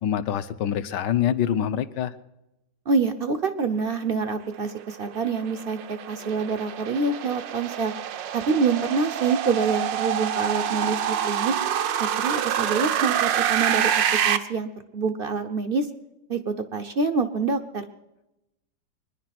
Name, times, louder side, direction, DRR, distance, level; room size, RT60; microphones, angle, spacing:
voice 1, 0.0-2.1, left 9 dB, 75° left, 12 dB, 1.3 m, -25 dB
voice 2, 2.9-7.9 8.3-11.5 12.2-13.9 14.2-15.9 16.3-17.8, right 4 dB, 50° right, 9 dB, 0.6 m, -26 dB
sound 1, 4.8-14.4, right 9 dB, 75° right, 1.4 m, -26 dB
23.0 x 10.5 x 5.9 m, 0.94 s
omnidirectional pair, 2.0 m